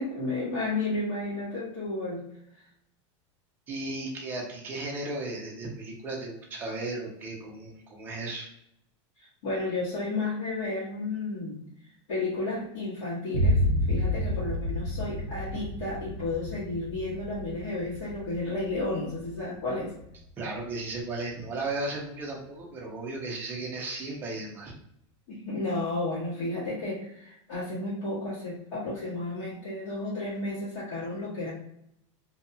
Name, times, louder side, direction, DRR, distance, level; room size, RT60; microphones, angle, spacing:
voice 1, 0.0-2.2 2.5-2.6 9.2-11.6 12.1-19.9 25.3-31.5, left 2 dB, 70° left, -10 dB, 1.4 m, -32 dB
voice 2, 3.7-8.5 20.4-24.7, right 2 dB, 15° right, -2 dB, 0.5 m, -35 dB
Boom, 13.3-21.2, equal, 70° right, 0.5 m, -30 dB
2.7 x 2.3 x 2.7 m, 0.76 s
supercardioid pair, 175°, 16 cm